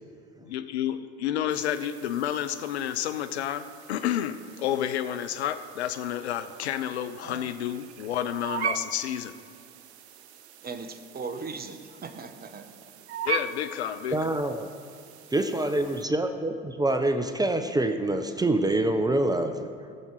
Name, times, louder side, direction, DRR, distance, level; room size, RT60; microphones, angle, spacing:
voice 1, 0.4-9.4 13.2-14.4, left 10 dB, 85° left, 10 dB, 0.6 m, -30 dB
sound 1, 1.5-16.0, right 7 dB, 80° right, 0.7 m, -40 dB
voice 2, 10.6-12.7, right 4 dB, 30° right, 8 dB, 1.1 m, -38 dB
voice 3, 14.1-14.7 15.3-19.7, right 2 dB, 10° right, 8 dB, 0.8 m, -26 dB
17.5 x 7.2 x 4.7 m, 2.2 s
hypercardioid pair, 70°, 32 cm